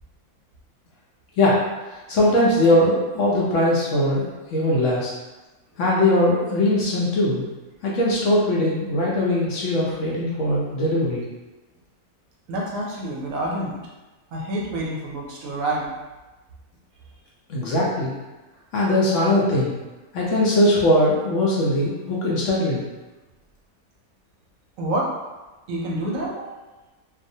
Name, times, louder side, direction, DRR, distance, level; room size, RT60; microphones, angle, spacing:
voice 1, 1.9-5.1 5.8-7.4 7.8-11.2 17.5-18.1 18.7-19.7 20.1-22.8, left 1 dB, 70° left, -5 dB, 0.8 m, -20 dB
voice 2, 12.5-13.8 14.3-15.9 24.8-25.1 25.7-26.5, right 1 dB, 70° right, -3 dB, 0.9 m, -27 dB
2.6 x 2.0 x 2.6 m, 1.1 s
omnidirectional pair, 1.5 m